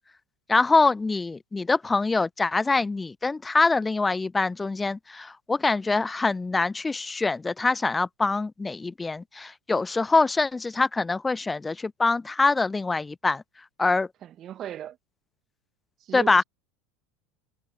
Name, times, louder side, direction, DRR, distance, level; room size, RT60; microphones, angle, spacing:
voice 1, 0.5-13.4 13.8-14.1 16.1-16.4, left 3 dB, 15° left, 0.3 m, -24 dB
voice 2, 14.2-15.0 16.0-16.4, right 11 dB, 40° right, 1.8 m, -37 dB
figure-of-eight pair, 75°, 0 cm